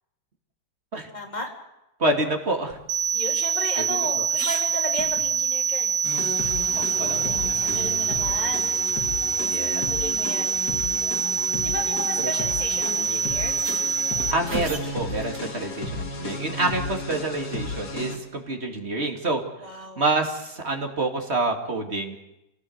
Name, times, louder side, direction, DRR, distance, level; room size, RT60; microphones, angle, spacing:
voice 1, 1.1-1.5 3.1-6.0 7.5-8.7 9.4-10.9 11.6-13.6 19.6-20.0, equal, 25° left, 1 dB, 3.8 m, -35 dB
voice 2, 2.0-2.8 3.9-4.3 6.7-8.0 9.5-9.9 11.2-11.4 14.3-19.4 20.0-22.2, right 2 dB, 40° right, 3 dB, 2.9 m, -27 dB
sound 1, 2.7-5.7 6.1-6.2 6.5-7.9 8.3-8.4 8.8-9.0 10.0-10.1 11.0-11.3 12.3-12.4 12.7-12.8 13.3-15.5 17.8-18.3, right 3 dB, 60° right, 3.0 m, -39 dB
sound 2, 2.9-14.3, right 6 dB, 85° right, 2.0 m, -25 dB
sound 3, 6.0-18.2, left 2 dB, 75° left, 3.3 m, -34 dB
26.5 x 18.5 x 8.1 m, 0.92 s
omnidirectional pair, 1.8 m